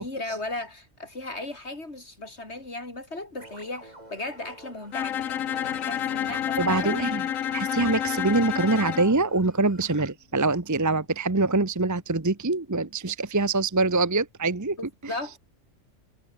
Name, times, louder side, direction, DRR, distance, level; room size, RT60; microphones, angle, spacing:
voice 1, 0.0-7.1 15.1-15.4, left 2 dB, 55° left, 5.4 m, -36 dB
sound 1, 3.4-10.1, right 1 dB, 30° right, 4.2 m, -48 dB
Bowed string instrument, 4.9-9.1, left 10 dB, 85° left, 1.3 m, -29 dB
voice 2, 6.3-7.2 7.5-14.8, right 3 dB, 15° right, 0.9 m, -24 dB
omnidirectional pair, 1.4 m